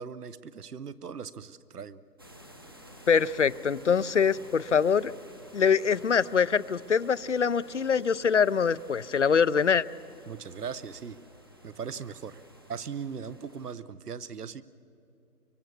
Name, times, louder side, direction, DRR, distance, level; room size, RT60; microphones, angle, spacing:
voice 1, 0.0-2.0 10.3-11.2 11.6-12.4 12.7-14.6, right 6 dB, 70° right, 17 dB, 1.0 m, -39 dB
sound 1, 2.2-13.7, equal, 15° right, 0.7 m, -52 dB
voice 2, 3.1-5.1 5.5-9.8, left 6 dB, 50° left, 18 dB, 0.5 m, -24 dB
24.0 x 23.5 x 7.0 m, 2.7 s
figure-of-eight pair, 155°, 48 cm